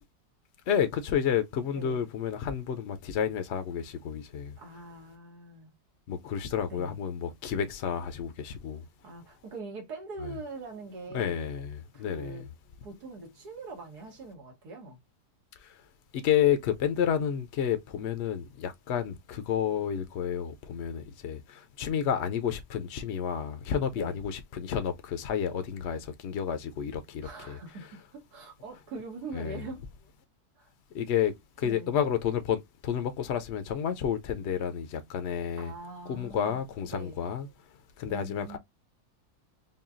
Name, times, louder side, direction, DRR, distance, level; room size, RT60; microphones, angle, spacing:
voice 1, 0.7-4.5 6.1-8.8 11.1-11.7 12.0-12.4 16.2-21.4 21.8-27.2 27.5-27.6 29.4-29.5 30.9-31.3 31.6-35.7 36.1-37.4 38.0-38.6, left 8 dB, 65° left, 0.6 m, -30 dB
voice 2, 1.7-2.0 4.6-5.7 6.7-7.0 9.0-11.4 11.9-12.5 12.8-15.0 16.9-17.1 23.9-24.2 27.2-29.8 30.6-30.7 31.6-31.9 35.6-37.2 38.1-38.6, right 3 dB, 90° right, 2.0 m, -43 dB
5.5 x 2.3 x 2.4 m
omnidirectional pair, 1.7 m